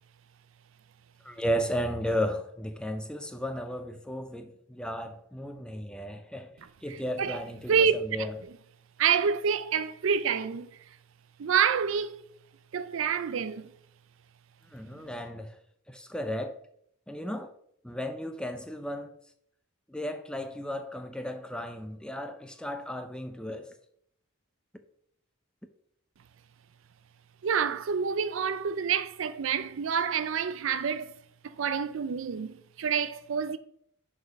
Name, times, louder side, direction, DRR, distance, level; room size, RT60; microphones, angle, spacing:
voice 1, 1.2-6.5 6.8-8.3 14.7-15.6 15.9-16.6 17.1-17.5 17.8-19.2 19.9-23.7, equal, 5° left, 0.5 m, -34 dB
voice 2, 6.9-7.4 7.7-8.0 9.0-10.8 11.4-12.2 12.7-13.7 14.9-15.1 27.4-31.1 31.4-33.6, right 7 dB, 65° right, 0.4 m, -28 dB
6.5 x 4.9 x 5.2 m
head